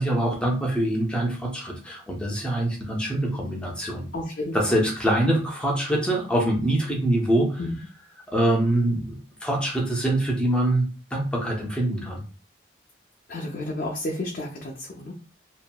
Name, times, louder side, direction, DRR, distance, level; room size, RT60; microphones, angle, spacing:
voice 1, 0.0-4.1 4.5-7.6 8.3-12.2, right 1 dB, 5° left, -2 dB, 0.6 m, -24 dB
voice 2, 4.1-4.8 7.6-7.7 13.3-15.1, left 1 dB, 50° left, -2 dB, 0.5 m, -31 dB
2.8 x 2.5 x 2.2 m, 0.37 s
head